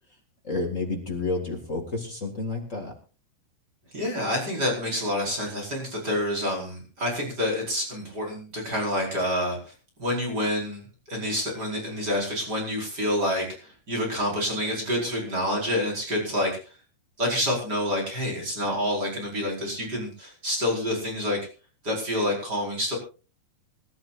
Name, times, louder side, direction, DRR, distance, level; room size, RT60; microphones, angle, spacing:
voice 1, 0.4-2.9, left 3 dB, 55° left, 2 dB, 0.8 m, -30 dB
voice 2, 3.9-9.6 10.0-10.8 11.1-16.5 17.2-21.4 21.8-22.9, left 1 dB, 25° right, -1 dB, 5.2 m, -28 dB
27.0 x 12.0 x 2.5 m, 0.35 s
omnidirectional pair, 4.8 m